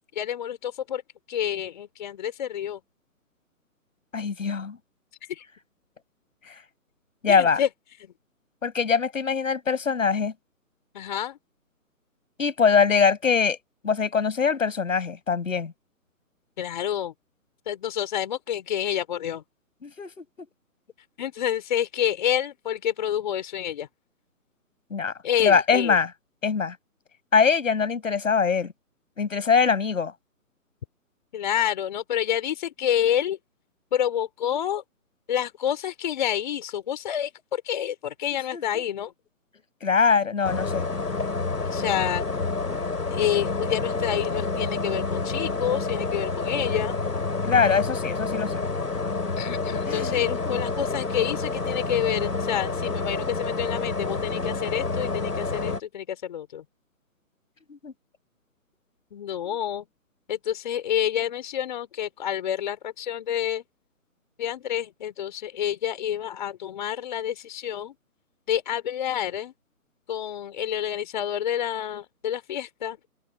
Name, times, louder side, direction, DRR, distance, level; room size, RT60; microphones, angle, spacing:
voice 1, 0.2-1.0 1.3-2.8 5.3-5.4 7.3-7.7 10.9-11.4 16.6-17.1 17.7-19.4 21.2-23.9 25.2-26.0 31.3-33.4 33.9-34.8 35.3-39.1 41.7-42.3 43.1-47.0 49.4-56.6 59.1-59.8 60.3-63.6 64.4-67.9 68.5-69.5 70.1-73.1, left 10 dB, 30° left, 3.7 m, -28 dB
voice 2, 4.1-4.8 6.4-6.6 7.2-7.6 8.6-10.3 12.4-13.6 13.8-15.7 19.8-20.2 24.9-25.1 25.4-26.1 26.4-26.8 27.3-28.7 29.2-30.1 38.5-38.8 39.8-40.8 47.4-48.6 49.9-50.6 57.7-57.9 59.4-59.6, left 5 dB, 55° left, 7.6 m, -23 dB
sound 1, 40.4-55.8, left 3 dB, 85° left, 4.1 m, -28 dB
open air
figure-of-eight pair, 160°, 46 cm